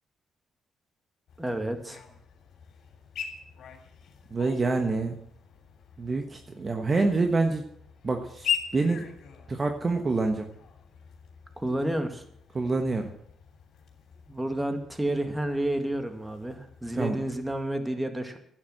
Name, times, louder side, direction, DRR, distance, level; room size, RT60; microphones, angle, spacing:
sound 1, 1.3-17.7, left 8 dB, 70° left, 3.1 m, -41 dB
voice 1, 1.4-2.0 11.6-12.2 14.3-18.4, right 1 dB, 10° right, 6 dB, 2.0 m, -30 dB
voice 2, 4.3-5.2 6.0-7.6 8.0-9.0 9.5-10.5 12.5-13.1 16.9-17.2, right 3 dB, 30° right, 5 dB, 1.3 m, -26 dB
11.5 x 9.4 x 7.7 m, 0.69 s
cardioid pair, 90°, 0 cm